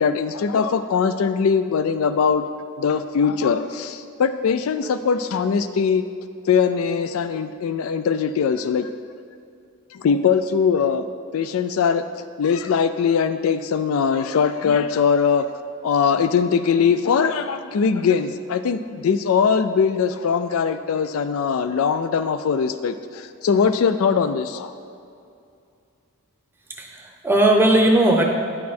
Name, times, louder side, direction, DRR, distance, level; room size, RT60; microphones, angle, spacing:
voice 1, 0.0-2.5 2.8-6.0 6.5-8.9 9.9-11.0 11.3-12.0 12.4-15.5 15.8-24.7, left 6 dB, 75° left, 11 dB, 0.4 m, -21 dB
voice 2, 26.8-28.2, right 1 dB, 10° right, 2 dB, 0.7 m, -17 dB
10.5 x 6.5 x 4.2 m, 2.5 s
head